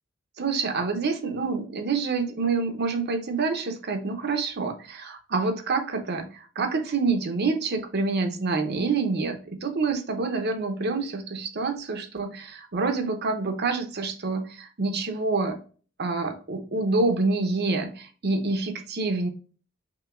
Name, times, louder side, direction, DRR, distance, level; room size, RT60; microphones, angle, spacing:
voice 1, 0.4-15.6 16.0-19.3, right 3 dB, 50° right, 7 dB, 0.8 m, -27 dB
5.9 x 2.8 x 2.4 m, 0.38 s
head